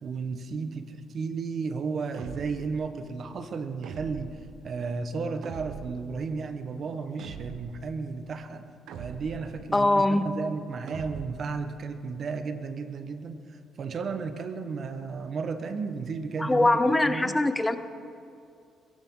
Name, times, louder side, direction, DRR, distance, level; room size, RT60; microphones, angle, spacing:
voice 1, 0.0-4.4 4.6-8.6 8.9-13.4 13.8-16.7 17.0-17.4, right 4 dB, 50° right, 9 dB, 1.2 m, -33 dB
sound 1, 2.1-2.8 3.8-4.5 5.4-6.1 7.2-7.8 8.9-9.5 10.9-11.5, right 7 dB, 75° right, 1.1 m, -41 dB
voice 2, 9.7-10.2 16.4-17.8, left 2 dB, 15° left, 10 dB, 0.9 m, -22 dB
21.5 x 16.5 x 3.9 m, 2.5 s
cardioid pair, 90°, 0 cm